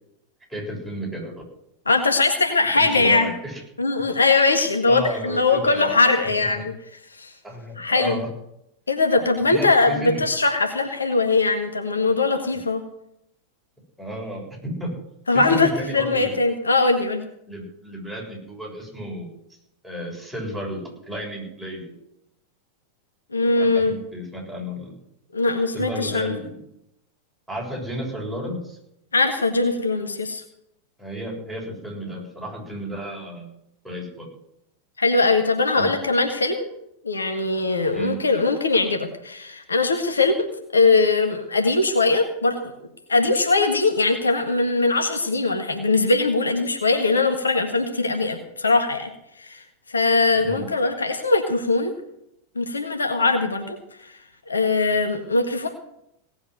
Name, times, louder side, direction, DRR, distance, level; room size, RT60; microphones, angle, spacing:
voice 1, 0.5-1.3 2.7-3.6 4.9-6.0 6.3-6.6 7.4-8.3 9.1-9.2 9.5-10.2 14.0-15.0 15.3-16.3 17.5-19.3 19.8-21.9 23.6-24.9 25.7-26.5 27.5-28.8 31.0-33.5 33.8-34.3 35.8-35.9 37.9-38.2 50.4-50.6, equal, ahead, -2 dB, 7.3 m, -32 dB
voice 2, 1.8-3.3 3.8-6.7 7.2-7.3 7.8-8.2 8.9-12.8 15.3-15.7 15.9-17.2 23.3-24.0 25.3-26.3 29.1-30.4 35.0-36.7 37.0-40.3 40.7-42.7 43.1-49.1 49.4-49.6 49.9-51.9 52.5-54.2 54.5-55.7, left 3 dB, 75° left, 5 dB, 1.6 m, -21 dB
18.0 x 8.0 x 7.9 m, 0.80 s
figure-of-eight pair, 90°, 0 cm